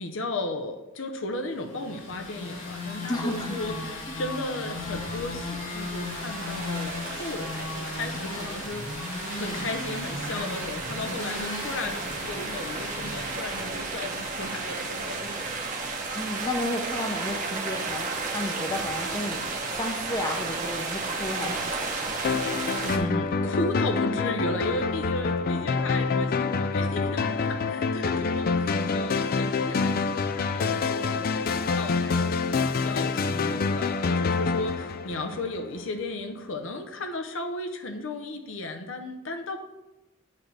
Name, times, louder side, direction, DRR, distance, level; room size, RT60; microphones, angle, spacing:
voice 1, 0.0-9.0 9.3-15.5 15.8-16.0 22.8-39.6, left 2 dB, 65° left, 5 dB, 0.7 m, -35 dB
sound 1, 1.6-14.5, left 2 dB, 85° left, 2.6 m, -36 dB
voice 2, 3.1-3.6 4.1-4.2 16.1-21.8, left 1 dB, 20° left, 3 dB, 0.7 m, -32 dB
sound 2, 5.0-23.0, right 3 dB, 40° right, 1.0 m, -34 dB
sound 3, 22.2-35.8, left 4 dB, 45° left, 0.3 m, -27 dB
8.5 x 3.3 x 6.3 m, 1.0 s
head